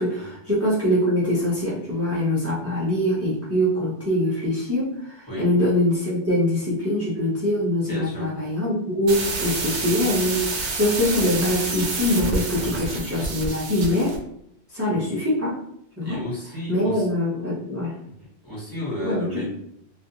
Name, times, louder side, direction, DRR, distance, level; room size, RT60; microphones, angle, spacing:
voice 1, 0.0-14.2 14.7-15.6 16.0-16.2 16.7-18.0 19.0-19.5, left 1 dB, 20° right, -9 dB, 0.4 m, -23 dB
voice 2, 7.9-8.4 9.1-9.4 14.9-15.1 16.0-17.1 18.2-19.5, equal, 20° left, -8 dB, 1.1 m, -33 dB
sound 1, 9.1-14.2, right 3 dB, 80° right, 1.0 m, -28 dB
2.4 x 2.3 x 2.7 m, 0.72 s
omnidirectional pair, 1.2 m